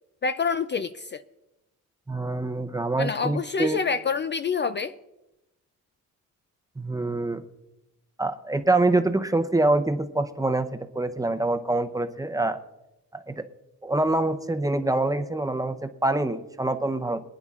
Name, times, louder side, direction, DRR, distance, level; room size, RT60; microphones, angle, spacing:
voice 1, 0.2-1.2 3.0-4.9, left 5 dB, 35° left, 10 dB, 0.4 m, -27 dB
voice 2, 2.1-3.8 6.8-7.4 8.2-10.7 10.9-12.6 13.1-13.4 13.8-17.2, right 2 dB, 10° right, 8 dB, 0.7 m, -25 dB
25.5 x 9.7 x 2.4 m, 0.96 s
cardioid pair, 120°, 32 cm